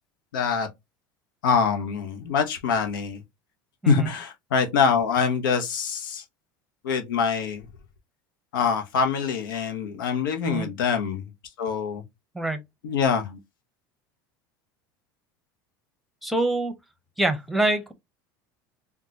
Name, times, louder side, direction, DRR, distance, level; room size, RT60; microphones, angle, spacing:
voice 1, 0.3-0.7 1.4-3.2 3.9-6.2 6.8-7.7 8.5-11.3 11.6-12.0 12.8-13.4, left 6 dB, 85° left, 0.8 m, -24 dB
voice 2, 16.2-16.7 17.2-17.9, right 2 dB, ahead, 0.8 m, -25 dB
3.7 x 2.2 x 2.8 m
hypercardioid pair, 90°, 11 cm